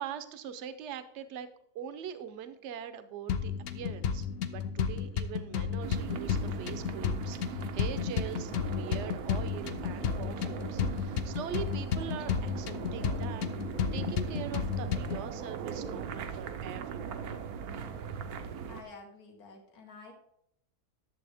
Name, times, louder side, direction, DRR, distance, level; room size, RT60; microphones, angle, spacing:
voice 1, 0.0-1.5 1.7-13.5 13.9-17.2, right 8 dB, 60° right, 11 dB, 0.9 m, -42 dB
sound 1, 3.3-15.3, left 7 dB, 60° left, 0.6 m, -33 dB
sound 2, 5.8-18.8, right 7 dB, 75° right, 1.2 m, -40 dB
voice 2, 18.7-20.1, left 3 dB, 75° left, 2 dB, 1.8 m, -50 dB
11.0 x 7.2 x 3.5 m, 0.74 s
omnidirectional pair, 1.6 m